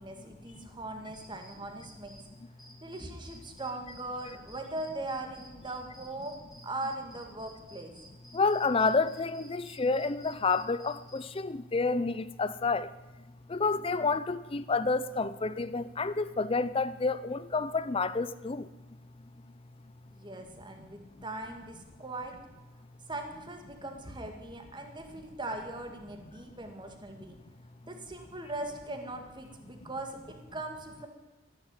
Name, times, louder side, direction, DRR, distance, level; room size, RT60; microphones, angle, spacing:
voice 1, 0.0-2.2 2.8-6.4 6.6-7.9 20.1-22.3 23.1-27.4 27.9-31.1, right 2 dB, 25° right, 2.0 m, -40 dB
sound 1, 1.1-2.2 2.6-11.2, equal, ahead, 2.7 m, -54 dB
voice 2, 8.3-12.9 13.5-18.7, left 4 dB, 25° left, 0.5 m, -29 dB
14.0 x 11.0 x 9.0 m
head